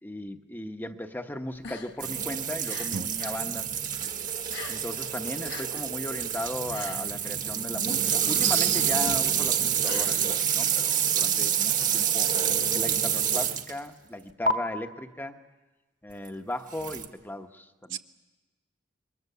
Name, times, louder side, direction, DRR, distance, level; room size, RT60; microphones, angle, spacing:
voice 1, 0.0-3.7 4.7-12.3 12.7-15.4 16.0-18.0, left 1 dB, 10° left, 6 dB, 1.0 m, -37 dB
sound 1, 1.5-3.5 3.7-5.1 5.3-10.8, left 5 dB, 60° left, 1.3 m, -44 dB
sound 2, 2.0-13.8 14.5-14.6 16.8-17.1, right 8 dB, 40° right, 1.5 m, -27 dB
voice 2, 8.4-8.8 17.9-18.0, right 9 dB, 65° right, 8 dB, 0.9 m, -29 dB
27.5 x 22.5 x 6.9 m, 1.2 s
head